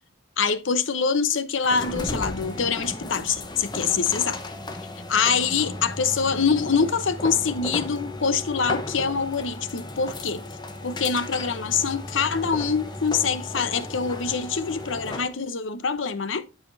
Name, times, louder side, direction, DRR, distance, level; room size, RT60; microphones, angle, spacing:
voice 1, 0.4-4.4 5.1-10.4 10.8-16.5, left 6 dB, 75° left, 0.8 m, -25 dB
sound 1, 1.6-15.4, left 1 dB, 20° left, 0.9 m, -35 dB
11.5 x 5.0 x 2.7 m
head